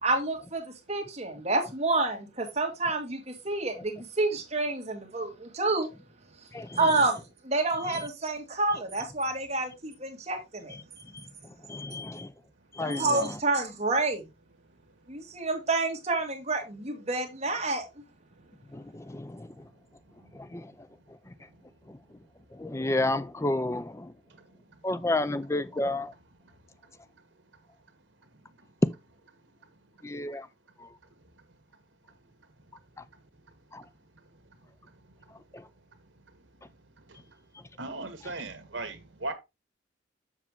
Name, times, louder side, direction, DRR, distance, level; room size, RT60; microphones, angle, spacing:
voice 1, 0.0-5.9 6.8-7.2 7.4-10.8 12.8-14.2 15.1-17.8, right 2 dB, 35° right, 2.2 m, -28 dB
voice 2, 11.7-12.3 12.8-13.4 18.7-19.5 20.3-20.7 21.9-22.0 22.6-24.1 24.8-26.1 30.0-30.5 30.8-30.9 33.7-33.8 35.5-35.6, left 2 dB, 15° left, 0.4 m, -31 dB
voice 3, 37.8-39.3, right 2 dB, 85° right, 1.7 m, -37 dB
7.4 x 5.8 x 3.6 m
head